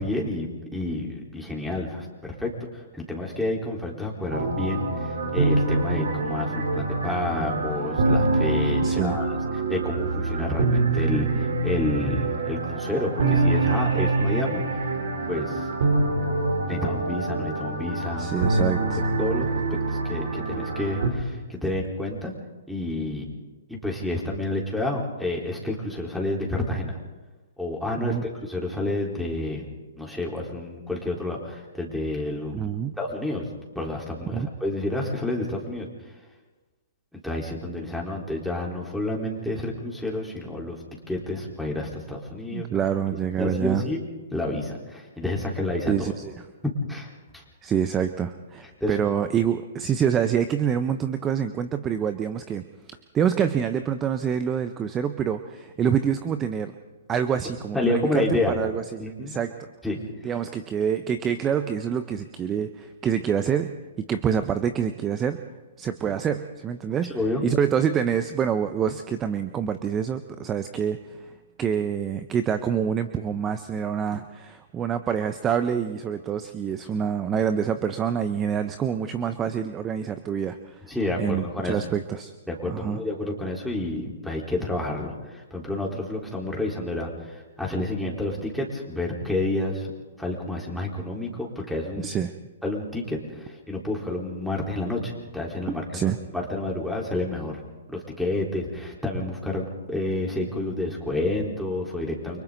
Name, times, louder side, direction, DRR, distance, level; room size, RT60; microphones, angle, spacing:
voice 1, 0.0-9.4 9.7-14.6 15.3-15.6 16.7-18.3 19.2-19.5 19.9-22.3 22.7-23.3 23.7-27.0 27.6-29.6 30.0-32.5 33.0-33.5 33.7-35.9 37.1-42.7 43.4-44.0 44.3-45.9 46.6-47.1 47.3-47.4 48.8-49.0 57.7-58.6 59.0-59.3 59.8-60.3 67.1-67.4 80.9-81.8 82.5-89.9 90.2-92.1 92.6-97.6 97.9-102.4, left 2 dB, ahead, -3 dB, 4.2 m, -29 dB
sound 1, 4.3-21.1, right 2 dB, 65° right, 4.0 m, -25 dB
voice 2, 8.8-9.2 18.2-19.0 27.9-28.2 32.5-32.9 34.3-34.5 42.5-43.8 45.9-46.4 47.6-52.6 53.1-56.7 57.1-59.7 60.2-65.4 65.8-80.9 81.2-82.3 82.7-83.0 92.0-92.3 95.7-96.2, right 8 dB, 20° right, 10 dB, 0.9 m, -26 dB
29.5 x 24.5 x 4.0 m, 1.2 s
hypercardioid pair, 125°, 0 cm